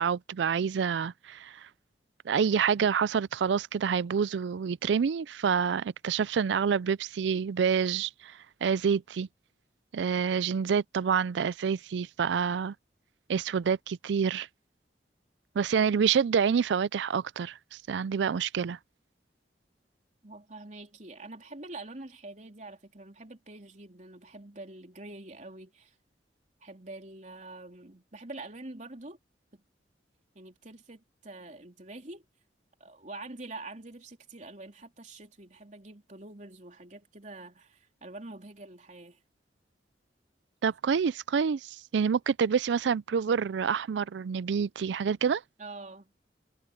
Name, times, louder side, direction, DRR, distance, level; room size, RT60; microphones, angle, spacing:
voice 1, 0.0-1.7 2.3-9.3 9.9-12.7 13.3-14.5 15.6-17.6 17.9-18.8 40.6-45.4, right 6 dB, 75° right, 0.4 m, -27 dB
voice 2, 20.2-25.9 26.6-29.2 29.5-29.6 30.4-32.3 32.8-39.2 45.6-46.1, right 2 dB, 40° right, 3.5 m, -45 dB
head